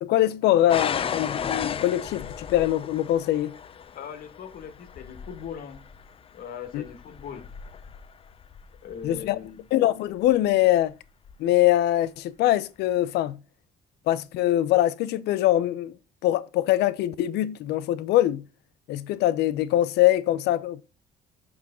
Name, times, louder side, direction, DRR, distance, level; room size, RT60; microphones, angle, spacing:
voice 1, 0.0-3.5 6.7-6.8 9.0-9.4 9.7-10.9 11.4-13.4 14.1-15.9 16.2-18.4 18.9-20.8, left 14 dB, 80° left, 0.6 m, -23 dB
sound 1, 0.7-9.5 10.2-10.7 11.2-11.4, left 7 dB, 35° left, 0.5 m, -35 dB
voice 2, 3.9-5.8 6.3-7.5 8.8-9.7, left 8 dB, 60° left, 1.5 m, -40 dB
6.5 x 6.0 x 3.7 m
cardioid pair, 110°, 17 cm